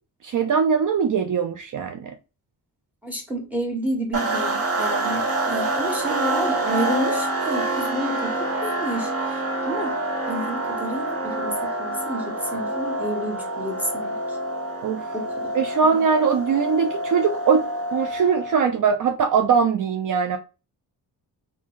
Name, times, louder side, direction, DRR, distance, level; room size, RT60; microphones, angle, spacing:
voice 1, 0.2-2.1 14.8-15.1 15.5-17.7 17.9-20.4, right 6 dB, 50° right, 0.5 m, -21 dB
voice 2, 3.0-9.1 9.6-9.9 10.3-14.4 15.1-15.5, right 1 dB, 5° right, 1.5 m, -30 dB
sound 1, 4.1-18.7, right 2 dB, 35° right, 0.9 m, -27 dB
3.6 x 2.7 x 3.1 m
cardioid pair, 95°, 40 cm